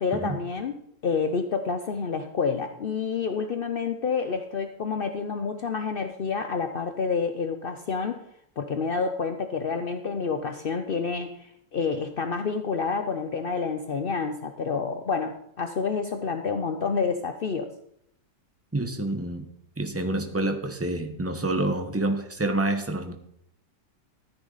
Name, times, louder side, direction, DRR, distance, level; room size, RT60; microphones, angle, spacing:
voice 1, 0.0-0.8 1.0-8.2 8.6-17.7, left 5 dB, 70° left, 7 dB, 0.5 m, -28 dB
voice 2, 18.7-19.5 19.8-23.1, right 2 dB, 10° right, 5 dB, 0.9 m, -28 dB
14.0 x 9.6 x 4.1 m, 0.71 s
omnidirectional pair, 1.9 m